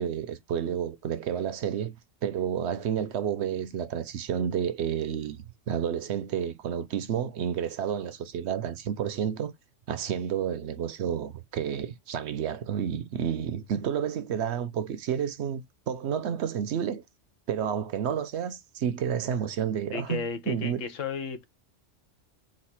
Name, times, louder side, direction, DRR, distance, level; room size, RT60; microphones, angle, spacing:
voice 1, 0.0-2.0 2.2-9.5 9.9-17.0 17.5-20.8, right 8 dB, 65° right, 0.8 m, -30 dB
voice 2, 19.9-21.4, left 5 dB, 80° left, 1.2 m, -34 dB
4.2 x 2.5 x 4.3 m
omnidirectional pair, 1.3 m